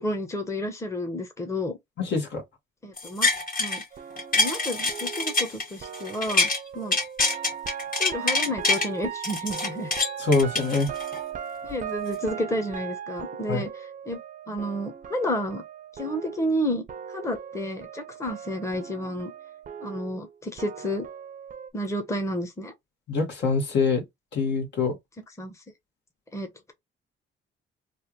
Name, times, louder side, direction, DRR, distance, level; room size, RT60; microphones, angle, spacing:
voice 1, 0.0-1.8 2.8-3.3 3.6-3.8 4.3-6.5 6.7-7.0 8.0-9.9 11.6-14.2 14.5-15.6 16.0-16.8 17.1-19.3 19.8-21.1 21.7-22.7 25.4-25.5 26.3-26.7, equal, 15° left, 0.9 m, -31 dB
voice 2, 2.0-2.4 10.2-10.9 13.5-13.6 23.1-24.0 24.3-25.0, left 4 dB, 60° left, 1.5 m, -24 dB
sound 1, 3.0-3.8 4.2-6.6 6.9-8.9 9.2-11.2 11.7-11.8, left 3 dB, 45° left, 1.7 m, -25 dB
sound 2, 3.9-16.6 16.9-21.7, right 8 dB, 40° right, 0.6 m, -38 dB
3.3 x 2.5 x 3.0 m
cardioid pair, 90°, 20 cm